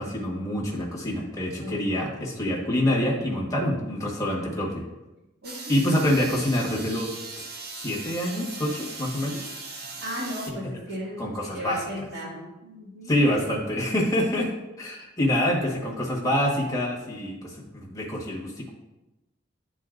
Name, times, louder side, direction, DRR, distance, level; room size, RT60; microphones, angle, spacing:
voice 1, 0.0-4.8 5.7-7.1 7.7-9.6 10.5-10.6 11.2-11.8 13.1-14.5 14.8-18.7, left 1 dB, 20° left, -3 dB, 1.4 m, -26 dB
sound 1, 5.4-10.5, right 3 dB, 55° right, 0.9 m, -39 dB
voice 2, 5.4-5.9 10.0-13.2, equal, 75° right, -10 dB, 2.1 m, -36 dB
10.5 x 4.0 x 2.6 m, 0.99 s
head